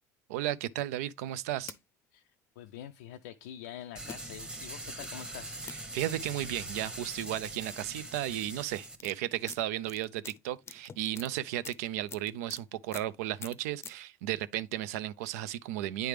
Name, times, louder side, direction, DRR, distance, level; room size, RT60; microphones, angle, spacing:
voice 1, 0.3-1.7 5.9-16.1, right 13 dB, 80° right, 0.4 m, -34 dB
sound 1, 1.3-1.8 2.7-2.8 4.0-4.2 5.0-5.1 5.7-5.8 7.3-7.4 7.6-7.9 8.6-12.6 12.9-13.1 13.4-13.9, left 6 dB, 30° left, 0.5 m, -46 dB
voice 2, 2.1-5.6, left 11 dB, 85° left, 0.4 m, -46 dB
sound 2, 4.0-9.0, right 1 dB, 10° right, 1.0 m, -42 dB
9.0 x 3.3 x 3.2 m
supercardioid pair, 85°, 8 cm